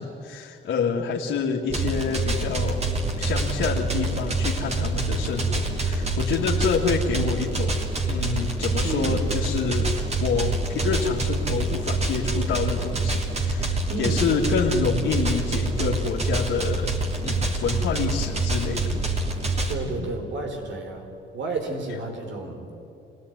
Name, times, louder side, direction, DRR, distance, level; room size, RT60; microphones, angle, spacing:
voice 1, 0.0-17.0 17.2-19.0 19.8-20.1, left 5 dB, 80° left, -4 dB, 2.4 m, -28 dB
sound 1, 1.7-19.7, right 2 dB, 35° right, 3.2 m, -26 dB
voice 2, 8.8-9.3 13.9-14.8 19.7-21.1 21.3-22.7, right 3 dB, 70° right, 3 dB, 4.9 m, -31 dB
26.5 x 18.0 x 9.8 m, 2.8 s
cardioid pair, 90°, 20 cm